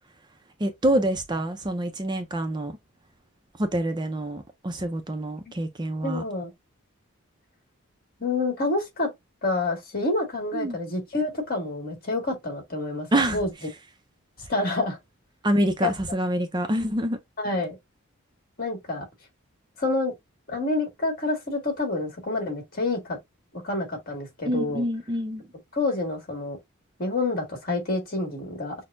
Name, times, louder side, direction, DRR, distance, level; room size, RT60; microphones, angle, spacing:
voice 1, 0.6-2.7 3.6-6.2 10.5-10.8 13.1-13.4 15.4-17.2 24.5-25.4, right 1 dB, 20° right, 0.4 m, -26 dB
voice 2, 6.0-6.5 8.2-9.1 9.4-13.5 14.5-15.0 15.8-15.9 17.4-17.7 18.6-19.0 19.8-20.1 20.5-23.2 23.5-24.8 25.7-26.6 27.0-28.7, left 2 dB, 45° left, 1.7 m, -28 dB
6.1 x 2.1 x 2.5 m
head